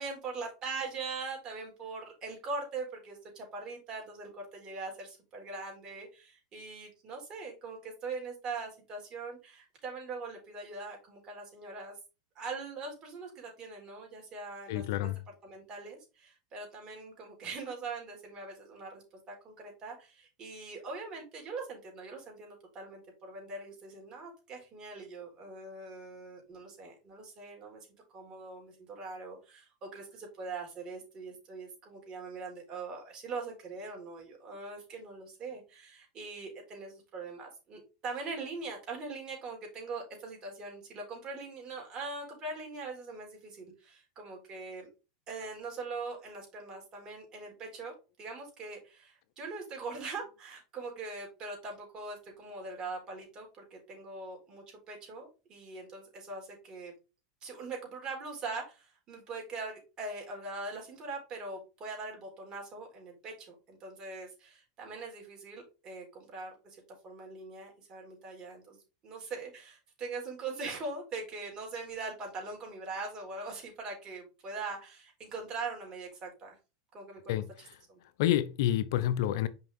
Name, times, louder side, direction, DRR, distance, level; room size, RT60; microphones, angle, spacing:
voice 1, 0.0-12.0 12.4-15.1 15.4-27.9 28.1-44.9 45.3-47.9 48.2-56.9 57.4-68.8 69.0-76.6 76.9-77.2 77.9-78.0, right 3 dB, 35° right, 4.1 m, -42 dB
voice 2, 14.7-15.2 77.3-77.8 78.2-79.5, left 12 dB, 70° left, 0.6 m, -29 dB
5.8 x 5.6 x 3.6 m
hypercardioid pair, 110°, 2 cm